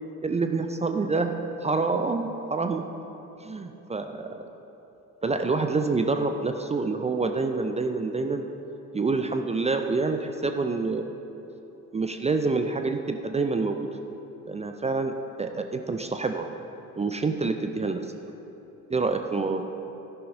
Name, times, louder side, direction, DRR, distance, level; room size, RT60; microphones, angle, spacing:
voice 1, 0.2-1.3 1.6-2.8 3.4-4.5 5.2-8.5 8.9-11.0 11.9-13.9 14.4-16.5 17.0-18.0 18.9-19.6, right 3 dB, 15° right, 6 dB, 0.5 m, -27 dB
13.5 x 11.0 x 2.7 m, 3.0 s
figure-of-eight pair, 45°, 43 cm